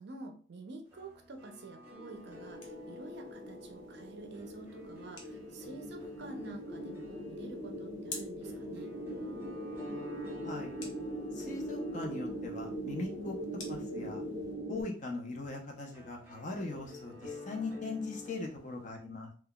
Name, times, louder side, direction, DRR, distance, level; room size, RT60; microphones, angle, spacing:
voice 1, 0.0-8.9, right 2 dB, 55° right, 5 dB, 0.5 m, -49 dB
sound 1, 0.9-18.9, left 3 dB, 10° right, 0.6 m, -50 dB
sound 2, 2.0-14.8, right 1 dB, 5° left, 1.4 m, -41 dB
sound 3, 2.1-14.5, left 3 dB, 70° left, 0.8 m, -54 dB
voice 2, 11.3-13.4 13.7-14.2 14.7-19.3, left 3 dB, 40° left, 1 dB, 0.6 m, -40 dB
3.7 x 2.2 x 2.2 m, 0.42 s
head